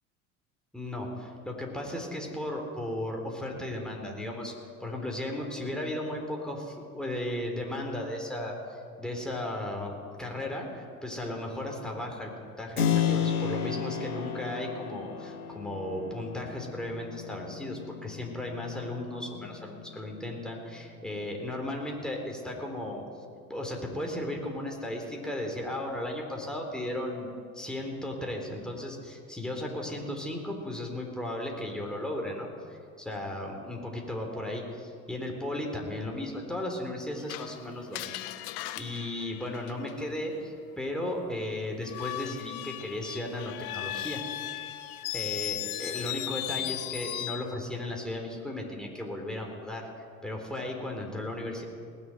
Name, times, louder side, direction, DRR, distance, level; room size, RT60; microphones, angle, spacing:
voice 1, 0.7-4.5 4.8-23.0 23.5-27.3 27.5-38.2 38.8-44.7 45.1-51.6, left 1 dB, ahead, 0 dB, 3.7 m, -35 dB
Keyboard (musical), 12.8-21.3, left 8 dB, 85° left, 1.6 m, -33 dB
Screech, 37.3-40.2 41.8-47.5, left 15 dB, 55° left, 0.9 m, -37 dB
18.5 x 7.2 x 9.1 m, 2.2 s
hypercardioid pair, 70°, 45 cm